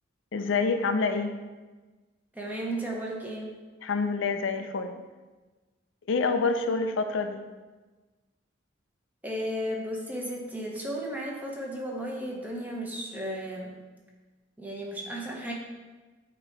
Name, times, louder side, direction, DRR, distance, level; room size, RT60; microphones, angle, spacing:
voice 1, 0.3-1.4 3.8-5.0 6.1-7.4, left 4 dB, 85° left, 7 dB, 0.5 m, -27 dB
voice 2, 2.3-3.5 9.2-13.8 14.6-15.5, equal, 10° right, -2 dB, 0.9 m, -34 dB
7.6 x 3.0 x 4.6 m, 1.3 s
head